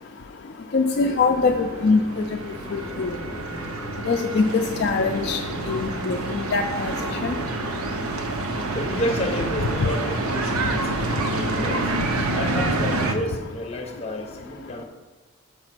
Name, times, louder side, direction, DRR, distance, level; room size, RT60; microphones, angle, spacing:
voice 1, 0.7-2.0 2.7-3.1 4.1-5.4 5.7-6.9 7.2-7.3, left 4 dB, 50° left, 0.3 m, -22 dB
sound 1, 0.9-12.9, left 1 dB, ahead, 2.1 m, -39 dB
sound 2, 1.1-13.2, right 2 dB, 85° right, 0.7 m, -28 dB
voice 2, 8.7-11.9 12.3-14.8, equal, 30° left, 0.7 m, -31 dB
6.6 x 4.8 x 6.0 m
head